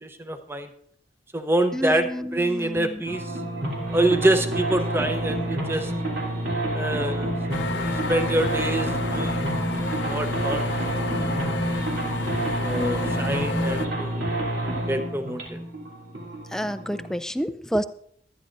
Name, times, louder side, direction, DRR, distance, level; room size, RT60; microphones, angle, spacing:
voice 1, 0.0-0.7 1.3-3.3 3.9-5.9 6.7-7.3 7.7-9.7 10.1-10.7 11.2-11.6 12.6-14.2 14.6-15.6, right 1 dB, 15° right, 7 dB, 0.8 m, -26 dB
voice 2, 1.7-3.0 16.5-17.9, equal, 5° left, 12 dB, 0.4 m, -29 dB
sound 1, 3.1-17.2, right 1 dB, 80° right, 3.1 m, -28 dB
sound 2, 7.5-13.9, left 3 dB, 80° left, 0.7 m, -31 dB
24.0 x 9.9 x 2.6 m, 0.67 s
head